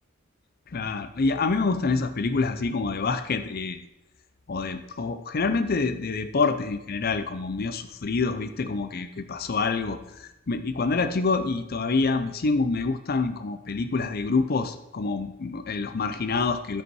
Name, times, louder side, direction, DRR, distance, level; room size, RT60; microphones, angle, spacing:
voice 1, 0.7-3.8 4.5-16.8, left 4 dB, 50° left, 9 dB, 0.5 m, -27 dB
13.0 x 5.3 x 4.7 m, 0.87 s
head